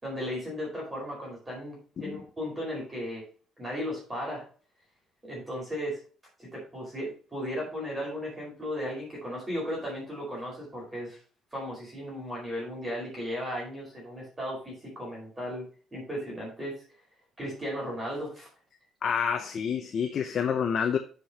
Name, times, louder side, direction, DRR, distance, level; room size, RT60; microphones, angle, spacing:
voice 1, 0.0-3.2 3.6-4.4 5.2-6.0 6.5-11.2 11.5-15.7 15.9-16.8 17.4-18.5, equal, 15° right, 4.6 m, -35 dB
voice 2, 19.0-21.0, left 7 dB, 45° left, 0.8 m, -28 dB
12.0 x 5.1 x 3.0 m
cardioid pair, 135°, 0 cm